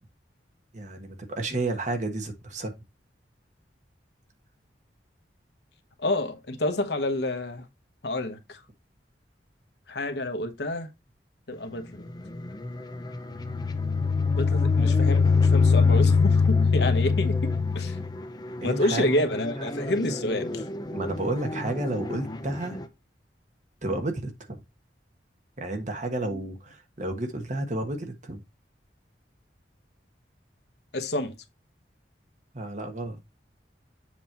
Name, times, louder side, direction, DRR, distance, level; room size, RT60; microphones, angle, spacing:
voice 1, 0.7-2.7 18.6-19.2 20.9-22.8 23.8-24.6 25.6-28.4 32.5-33.2, right 2 dB, 45° right, 1.3 m, -31 dB
voice 2, 6.0-7.6 8.0-8.6 9.9-10.9 11.5-12.0 14.3-18.0 18.6-20.6 26.3-26.5 30.9-31.3, left 1 dB, 65° left, 1.1 m, -29 dB
sound 1, 11.5-22.9, left 1 dB, 25° left, 0.7 m, -36 dB
sound 2, 13.4-18.1, left 5 dB, 80° left, 0.4 m, -21 dB
7.4 x 3.0 x 5.7 m
head